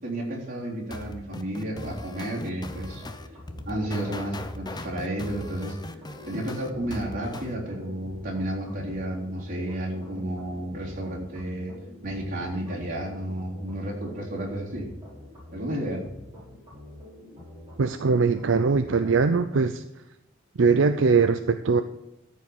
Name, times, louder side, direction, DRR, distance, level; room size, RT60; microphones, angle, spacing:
voice 1, 0.0-3.0 3.7-5.8 6.3-11.8 12.0-14.9 15.5-16.0, right 1 dB, 45° right, -4 dB, 3.6 m, -32 dB
sound 1, 0.9-7.5, left 2 dB, 20° left, 0.7 m, -39 dB
sound 2, 2.9-19.4, left 1 dB, 20° right, 4.3 m, -46 dB
voice 2, 17.8-19.8 20.6-21.8, right 4 dB, 70° right, 9 dB, 0.5 m, -21 dB
13.5 x 5.2 x 7.3 m, 0.92 s
head